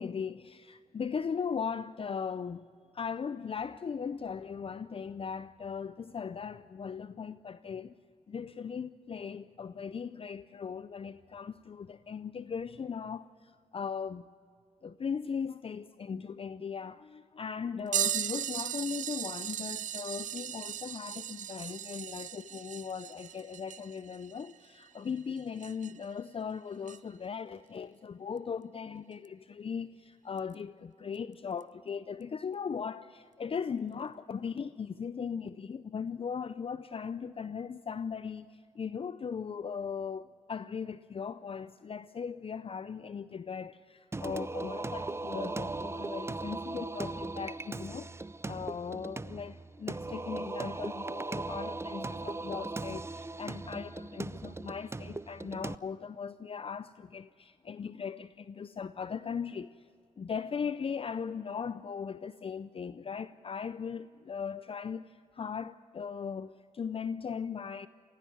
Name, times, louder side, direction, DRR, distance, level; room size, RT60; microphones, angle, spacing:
voice 1, 0.0-2.7 2.9-7.9 8.3-14.3 14.8-59.9 60.2-67.9, left 6 dB, 40° left, 0.5 m, -38 dB
sound 1, 17.9-26.1 26.9-27.0 29.2-29.3 30.4-30.5 31.6-31.7, right 10 dB, 65° right, 0.5 m, -37 dB
Singing, 44.1-55.8, right 2 dB, 20° right, 0.6 m, -38 dB
18.0 x 17.0 x 9.5 m
supercardioid pair, 55°, 14 cm